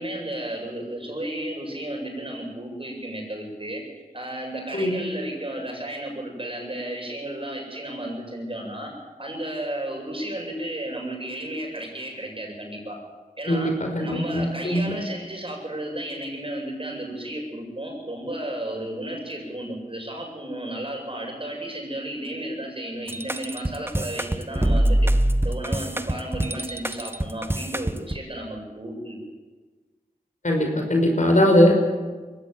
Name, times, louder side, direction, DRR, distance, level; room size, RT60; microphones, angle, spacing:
voice 1, 0.0-3.8 4.1-8.9 9.2-13.0 13.4-13.7 14.0-25.1 25.4-29.2, right 1 dB, 35° right, 1 dB, 7.9 m, -33 dB
voice 2, 13.5-15.0 30.4-31.7, left 1 dB, 55° left, 3 dB, 5.4 m, -20 dB
sound 1, 23.1-28.2, right 1 dB, 15° right, 1.1 m, -24 dB
22.0 x 16.5 x 9.1 m, 1.4 s
cardioid pair, 45°, 15 cm